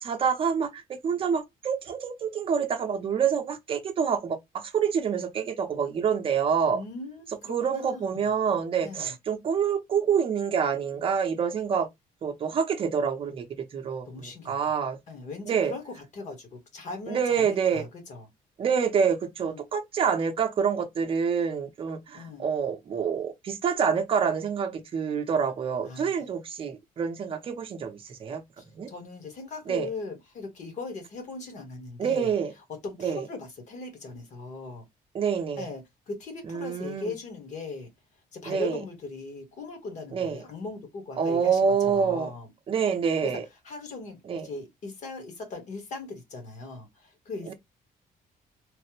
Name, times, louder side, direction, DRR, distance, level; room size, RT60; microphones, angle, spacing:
voice 1, 0.0-6.8 7.5-11.9 12.2-15.0 15.5-15.7 17.1-17.9 18.6-28.4 28.7-28.9 29.7-29.9 32.0-32.5 33.0-33.2 35.1-35.7 36.5-37.1 38.5-38.8 40.1-40.4 41.2-42.3 42.7-43.4 44.3-44.5 47.5-47.6, right 6 dB, 35° right, 0.6 m, -27 dB
voice 2, 6.7-8.3 8.8-9.1 14.0-14.7 15.1-18.3 19.4-19.6 22.1-22.5 25.8-26.2 28.6-32.3 32.8-34.9 35.6-37.9 38.3-42.5 43.2-43.3 43.6-44.2 44.4-47.5, left 3 dB, 50° left, 1.2 m, -39 dB
3.2 x 2.1 x 3.0 m
cardioid pair, 175°, 16 cm